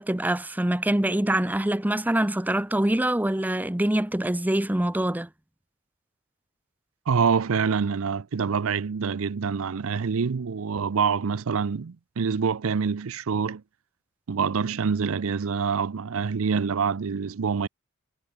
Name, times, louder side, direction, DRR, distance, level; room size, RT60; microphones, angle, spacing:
voice 1, 0.0-5.3, right 1 dB, 10° right, 0.7 m, -24 dB
voice 2, 7.1-13.6 14.3-17.7, right 6 dB, 70° right, 0.5 m, -26 dB
head